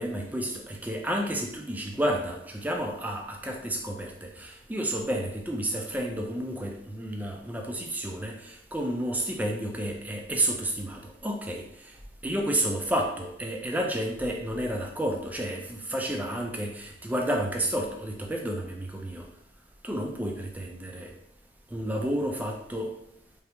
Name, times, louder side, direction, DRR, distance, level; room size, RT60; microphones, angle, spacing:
voice 1, 0.0-11.9 12.2-19.3 19.8-21.1 21.7-22.9, right 1 dB, 10° right, 1 dB, 0.3 m, -31 dB
3.3 x 2.4 x 2.8 m, 0.75 s
head